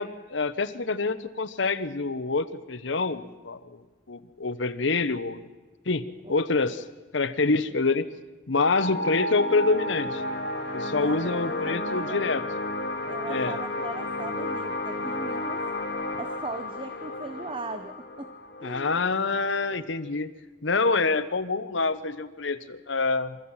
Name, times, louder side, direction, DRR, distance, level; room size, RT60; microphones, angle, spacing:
voice 1, 0.0-3.8 4.1-5.5 5.9-6.0 6.3-6.8 7.1-8.1 8.5-10.2 10.7-12.4 13.3-13.5 18.6-20.3 20.6-23.4, left 3 dB, 80° left, 12 dB, 1.1 m, -26 dB
sound 1, 8.8-19.8, left 1 dB, 55° left, 2.2 m, -32 dB
voice 2, 10.9-12.3 13.0-15.6 16.2-18.3 18.6-19.1, right 2 dB, 25° right, 9 dB, 0.7 m, -39 dB
24.5 x 14.0 x 8.9 m, 1.3 s
head